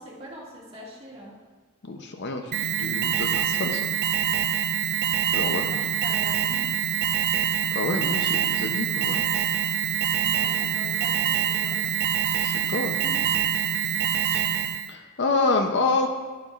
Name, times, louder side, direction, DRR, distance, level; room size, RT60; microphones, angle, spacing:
voice 1, 0.0-1.4 5.5-6.7 10.1-11.8 12.7-13.5, equal, 25° right, -5 dB, 1.9 m, -42 dB
voice 2, 1.8-3.9 5.3-5.8 7.7-9.2 12.4-12.9 14.3-14.4 14.9-16.1, left 3 dB, 55° left, 5 dB, 0.6 m, -27 dB
Alarm, 2.5-14.9, right 9 dB, 50° right, 0.3 m, -25 dB
10.5 x 7.9 x 2.4 m, 1.4 s
head